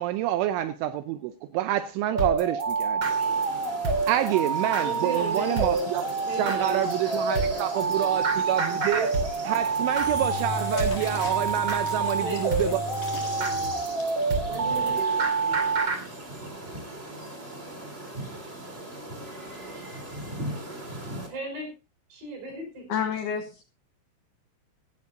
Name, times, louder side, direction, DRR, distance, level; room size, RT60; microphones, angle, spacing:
voice 1, 0.0-3.1 4.1-6.0 6.4-9.1 9.4-12.8, right 13 dB, 80° right, 3.1 m, -27 dB
sound 1, 2.1-16.0, right 4 dB, 35° right, 2.4 m, -27 dB
sound 2, 3.0-21.3, right 1 dB, 15° right, 2.9 m, -40 dB
voice 2, 4.8-5.9 6.3-8.2 12.2-12.8 13.3-13.8 14.5-15.7 21.3-21.7 22.1-23.1, right 2 dB, 55° right, 7.5 m, -37 dB
Engine / Drill, 9.8-14.3, left 5 dB, 45° left, 5.0 m, -37 dB
voice 3, 22.9-23.6, left 7 dB, 75° left, 2.4 m, -29 dB
17.0 x 13.0 x 2.7 m
omnidirectional pair, 5.7 m